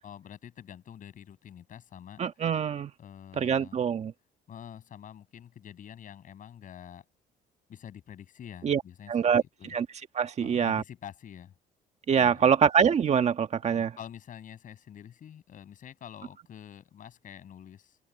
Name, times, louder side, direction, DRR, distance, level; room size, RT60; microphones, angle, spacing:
voice 1, 0.0-2.2 3.0-3.8 4.5-7.0 7.7-9.1 9.4-9.7 10.4-11.5 12.2-12.5 13.6-18.0, left 9 dB, 50° left, 7.2 m, -47 dB
voice 2, 2.2-2.9 3.4-4.1 8.6-8.8 9.1-9.4 9.7-9.9 10.1-10.8 12.1-13.9, right 7 dB, 40° right, 1.4 m, -24 dB
open air
cardioid pair, 110°, 17 cm